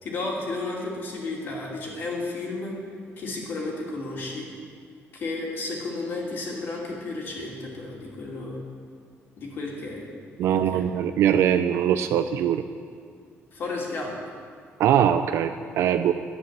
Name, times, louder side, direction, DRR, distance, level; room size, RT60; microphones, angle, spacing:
voice 1, 0.0-2.8 3.2-4.5 5.1-8.6 9.4-10.1 10.5-10.9 13.5-14.1, left 2 dB, 45° left, -2 dB, 2.7 m, -32 dB
voice 2, 10.4-12.6 14.8-16.1, right 9 dB, 65° right, 9 dB, 0.5 m, -22 dB
11.5 x 9.8 x 7.5 m, 2.1 s
cardioid pair, 165°, 5 cm